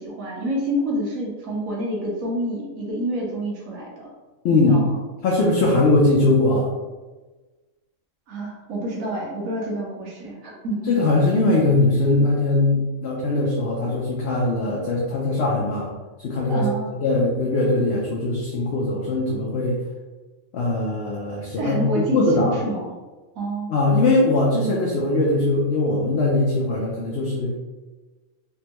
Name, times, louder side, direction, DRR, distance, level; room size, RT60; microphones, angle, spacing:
voice 1, 0.0-4.1 4.5-5.0 8.3-10.9 16.5-16.9 21.6-22.9 23.4-23.7, right 1 dB, 85° right, -3 dB, 1.3 m, -28 dB
voice 2, 4.4-4.9 5.2-6.7 10.9-15.9 16.2-19.8 20.5-22.6 23.7-27.5, left 2 dB, 60° left, -3 dB, 0.7 m, -21 dB
3.5 x 2.2 x 2.9 m, 1.2 s
omnidirectional pair, 1.4 m